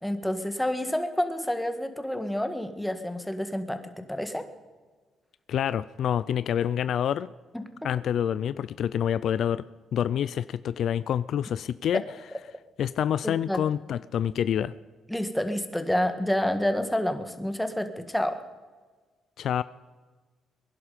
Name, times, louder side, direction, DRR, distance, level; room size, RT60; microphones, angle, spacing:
voice 1, 0.0-4.5 13.2-13.6 15.1-18.4, left 1 dB, 5° left, 8 dB, 1.6 m, -29 dB
voice 2, 5.5-7.3 7.8-9.6 9.9-12.0 12.8-14.7 19.4-19.6, left 9 dB, 70° left, 16 dB, 0.4 m, -27 dB
22.0 x 11.0 x 5.1 m, 1.4 s
cardioid pair, 90°, 0 cm